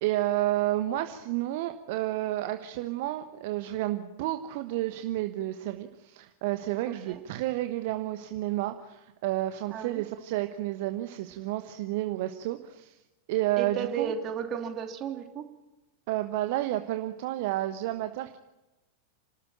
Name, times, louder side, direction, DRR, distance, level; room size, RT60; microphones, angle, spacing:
voice 1, 0.0-13.0 13.3-14.1 16.1-18.4, right 15 dB, 50° right, 8 dB, 1.2 m, -31 dB
voice 2, 6.9-7.2 9.7-10.0 13.6-15.4, right 8 dB, 30° right, 4 dB, 3.2 m, -34 dB
30.0 x 13.5 x 8.9 m, 1.0 s
figure-of-eight pair, 90°, 0 cm